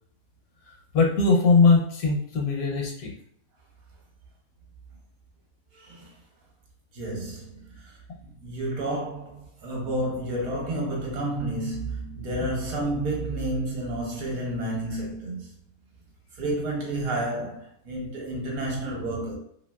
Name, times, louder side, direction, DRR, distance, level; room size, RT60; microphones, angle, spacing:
voice 1, 0.7-3.1 12.4-12.5, left 4 dB, 75° left, 1.1 m, -21 dB
voice 2, 5.7-6.1 6.9-15.5 16.3-19.4, right 1 dB, 65° right, 1.1 m, -30 dB
2.8 x 2.7 x 2.2 m
omnidirectional pair, 1.7 m